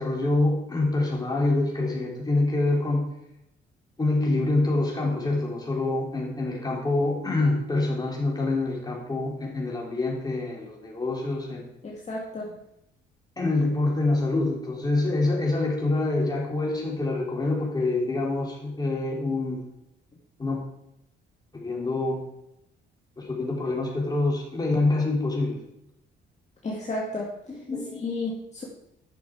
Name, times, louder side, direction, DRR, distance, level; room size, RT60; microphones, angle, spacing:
voice 1, 0.0-3.1 4.0-11.7 13.4-19.6 20.4-20.6 21.5-22.2 23.2-25.6 27.5-28.0, left 2 dB, 20° left, -2 dB, 3.5 m, -26 dB
voice 2, 11.8-12.6 26.6-27.3 28.0-28.6, left 2 dB, 35° left, -3 dB, 2.0 m, -32 dB
11.0 x 6.6 x 4.8 m, 0.82 s
cardioid pair, 90°, 20 cm